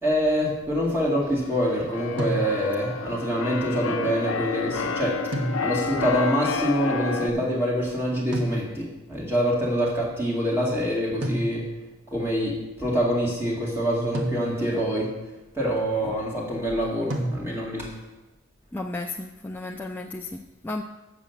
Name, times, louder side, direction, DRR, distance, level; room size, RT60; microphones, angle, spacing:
voice 1, 0.0-5.2 5.6-11.6 12.1-15.1 15.5-17.9, equal, 10° right, -5 dB, 2.2 m, -25 dB
Keyboard (musical), 1.4-7.3, left 4 dB, 65° left, 0.6 m, -30 dB
sound 1, 2.2-2.9 5.3-6.1 8.3-9.1 11.2-12.0 14.1-14.9 17.1-17.9, right 1 dB, 60° right, 1.3 m, -31 dB
voice 2, 18.7-20.8, left 2 dB, 10° left, 1 dB, 0.3 m, -34 dB
7.8 x 7.0 x 7.1 m, 1.1 s
head